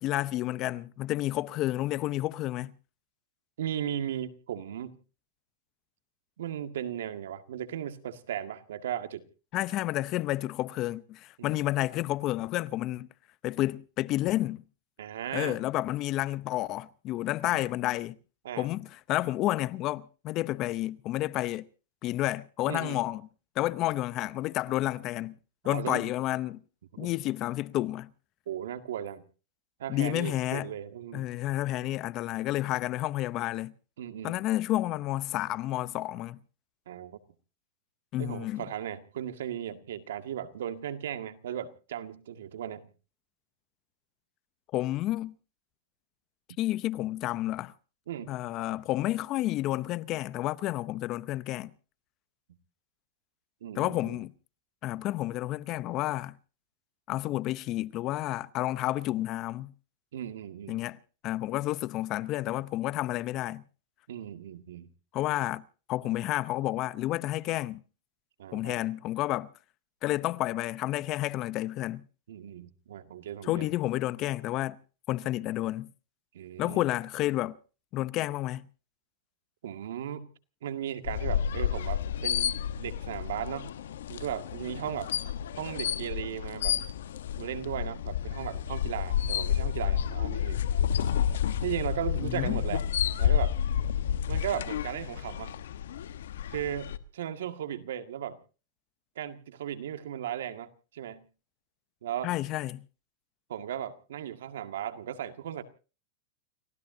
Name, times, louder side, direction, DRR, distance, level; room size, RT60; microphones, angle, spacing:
voice 1, 0.0-2.7 9.5-13.1 13.4-14.6 15.3-18.2 18.6-21.7 22.0-23.2 23.6-25.3 25.6-26.6 27.0-28.1 29.9-30.7 31.1-33.7 34.2-36.4 38.1-38.6 44.7-45.3 46.6-47.7 48.3-51.7 53.8-54.3 54.8-56.3 57.1-59.7 60.7-61.0 61.2-63.6 65.1-65.6 65.9-67.8 68.5-69.5 70.0-72.0 73.4-74.8 75.1-75.9 76.6-77.5 77.9-78.7 92.2-92.6 102.2-102.8, left 16 dB, 35° left, 0.7 m, -30 dB
voice 2, 3.6-5.0 6.4-9.2 11.4-11.7 15.0-15.6 17.5-17.6 18.4-18.7 22.7-23.0 25.6-26.1 26.9-27.1 28.5-29.2 29.8-31.3 34.0-34.4 36.9-37.2 38.2-42.9 48.1-48.3 53.6-54.2 60.1-60.8 64.1-64.9 68.4-68.7 72.3-73.7 76.3-76.8 79.6-80.3 80.6-83.7 84.1-85.1 85.6-86.8 87.4-90.6 91.6-92.8 93.2-93.6 94.3-95.5 96.5-98.4 99.2-101.2 102.0-102.3 103.5-105.6, right 10 dB, 85° right, 1.9 m, -36 dB
sound 1, 81.0-97.0, left 9 dB, 90° left, 1.1 m, -30 dB
30.0 x 16.5 x 2.8 m
supercardioid pair, 145°, 0 cm